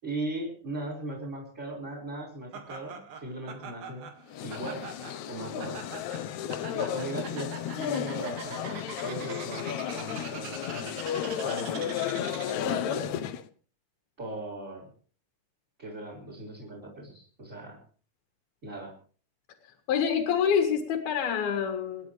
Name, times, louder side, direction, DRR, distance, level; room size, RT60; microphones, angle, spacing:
voice 1, 0.0-4.1 4.4-4.8 5.3-5.8 6.7-11.0 11.4-11.9 12.5-13.3 14.2-14.9 15.8-17.8 18.6-18.9, right 2 dB, 20° right, -1 dB, 5.3 m, -38 dB
Laughter, 2.5-12.8, right 6 dB, 75° right, 3.8 m, -44 dB
sound 1, 4.3-13.5, left 10 dB, 75° left, 1.8 m, -33 dB
voice 2, 12.7-13.0 19.9-22.1, left 7 dB, 90° left, 4 dB, 3.7 m, -27 dB
29.5 x 11.0 x 3.4 m, 0.41 s
omnidirectional pair, 4.2 m